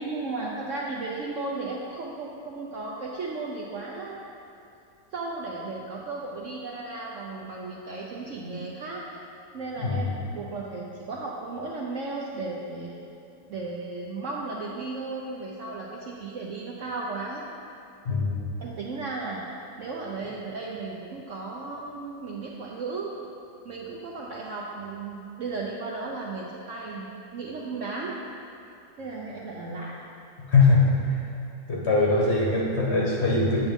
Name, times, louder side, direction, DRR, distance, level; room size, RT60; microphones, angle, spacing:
voice 1, 0.0-4.3 5.1-9.0 9.5-12.9 13.5-17.5 18.6-19.5 19.8-23.1 23.6-28.1 29.0-30.0, right 3 dB, 65° right, -3 dB, 0.8 m, -35 dB
voice 2, 9.8-10.1 18.0-18.4 30.4-31.2 31.7-33.6, left 3 dB, 45° left, -4 dB, 1.1 m, -22 dB
8.0 x 7.0 x 3.6 m, 2.6 s
omnidirectional pair, 1.9 m